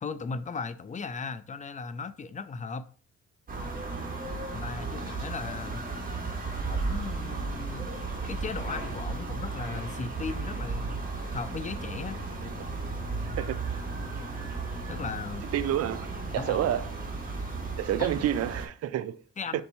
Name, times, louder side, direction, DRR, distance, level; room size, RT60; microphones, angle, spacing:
voice 1, 0.0-2.8 4.5-5.9 6.7-7.8 8.3-11.0 11.3-12.2 14.9-15.5 16.3-16.8 18.0-18.1 19.4-19.6, left 5 dB, 25° left, 0.4 m, -37 dB
sound 1, 3.5-18.7, right 3 dB, 30° right, 1.4 m, -35 dB
voice 2, 15.5-16.1 16.3-16.9 17.8-19.2 19.5-19.6, right 11 dB, 55° right, 0.4 m, -29 dB
4.5 x 2.7 x 4.2 m
cardioid pair, 90°, 30 cm